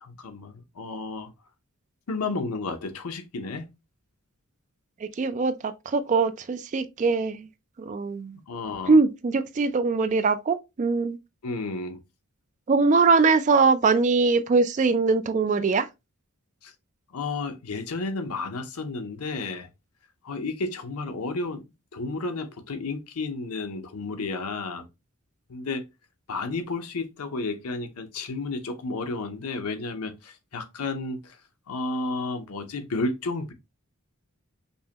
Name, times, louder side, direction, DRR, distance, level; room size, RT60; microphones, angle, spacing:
voice 1, 0.0-1.3 2.1-3.7 8.5-9.0 11.4-12.0 16.6-16.7 17.1-19.7 20.2-21.6 21.9-24.9 25.5-25.8 26.3-31.4 31.7-33.5, left 3 dB, 90° left, 0.7 m, -32 dB
voice 2, 5.0-7.5 7.8-8.4 8.9-11.2 12.7-15.9, right 4 dB, 35° right, 0.3 m, -22 dB
5.3 x 2.1 x 2.8 m
head